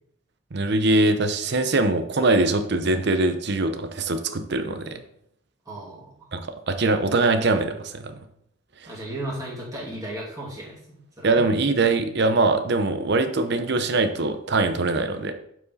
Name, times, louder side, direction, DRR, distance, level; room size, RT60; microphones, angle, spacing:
voice 1, 0.5-5.0 6.3-8.2 11.2-15.3, right 2 dB, 60° right, 8 dB, 0.7 m, -22 dB
voice 2, 5.7-6.1 8.9-11.4, right 1 dB, 20° right, -5 dB, 2.6 m, -35 dB
8.1 x 4.8 x 4.1 m, 0.71 s
head